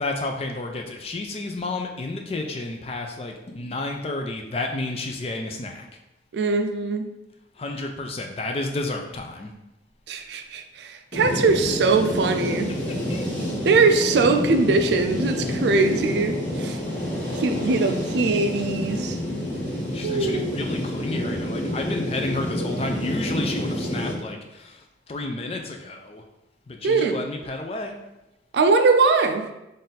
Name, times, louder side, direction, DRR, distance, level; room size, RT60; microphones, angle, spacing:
voice 1, 0.0-5.9 7.6-9.5 13.1-13.2 19.9-26.2 26.7-27.9, left 2 dB, 35° left, 3 dB, 0.4 m, -31 dB
voice 2, 6.3-7.1 10.1-12.7 13.6-16.8 17.4-19.2 20.0-20.6 26.8-27.2 28.5-29.5, right 3 dB, 75° right, 7 dB, 0.4 m, -21 dB
sound 1, 11.1-24.1, equal, 15° left, 1.5 m, -28 dB
3.9 x 2.5 x 4.0 m, 0.94 s
head